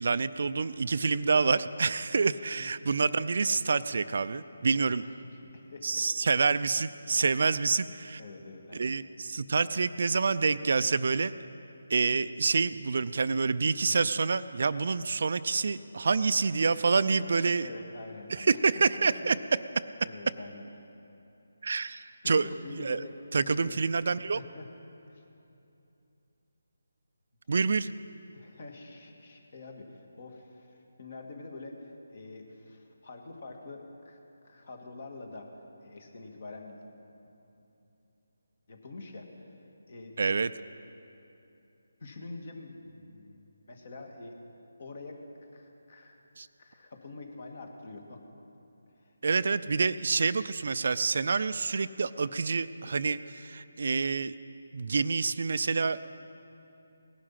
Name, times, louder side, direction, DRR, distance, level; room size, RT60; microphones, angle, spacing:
voice 1, 0.0-5.1 5.8-8.2 8.7-11.3 11.9-17.7 18.3-19.4 19.8-19.9 21.6-22.5 22.7-23.0 23.3-24.4 27.5-27.9 40.2-40.5 46.4-46.5 49.2-54.3 54.7-56.0, right 4 dB, 55° right, 14 dB, 0.4 m, -27 dB
voice 2, 5.0-6.1 7.0-7.2 8.2-8.9 17.2-17.3 17.5-19.3 20.0-20.6 22.2-23.8 24.3-24.7 25.1-25.2 28.3-34.2 34.4-35.5 35.8-37.0 38.7-39.5 39.9-40.2 42.0-44.4 44.8-45.2 45.5-46.2 46.6-48.2 49.0-49.1, left 3 dB, 50° left, 3 dB, 1.9 m, -46 dB
18.5 x 11.5 x 5.8 m, 2.8 s
figure-of-eight pair, 160°, 0 cm